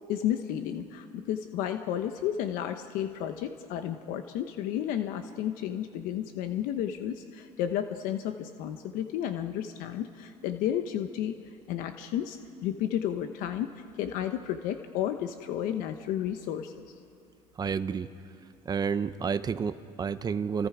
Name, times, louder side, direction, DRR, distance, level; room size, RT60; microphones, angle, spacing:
voice 1, 0.1-11.3 11.7-16.9, left 10 dB, 80° left, 7 dB, 1.0 m, -32 dB
voice 2, 17.6-18.1 18.6-20.7, right 6 dB, 30° right, 12 dB, 0.8 m, -30 dB
29.5 x 27.0 x 4.9 m, 2.5 s
cardioid pair, 120°, 14 cm